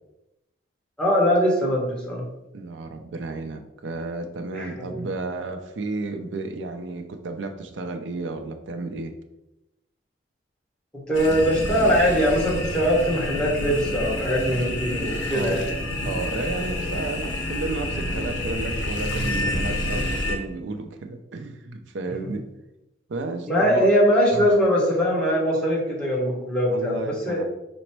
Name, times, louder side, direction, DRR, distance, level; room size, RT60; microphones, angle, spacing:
voice 1, 1.0-2.2 4.5-5.1 10.9-15.6 22.2-22.3 23.5-27.4, equal, 5° left, -5 dB, 1.2 m, -22 dB
voice 2, 2.5-9.2 15.3-15.6 16.0-22.4 23.1-23.9 24.3-24.5 26.7-27.4, right 3 dB, 80° right, 7 dB, 0.4 m, -32 dB
sound 1, 11.1-20.4, left 1 dB, 75° left, 0.8 m, -28 dB
5.0 x 2.1 x 4.4 m, 0.91 s
head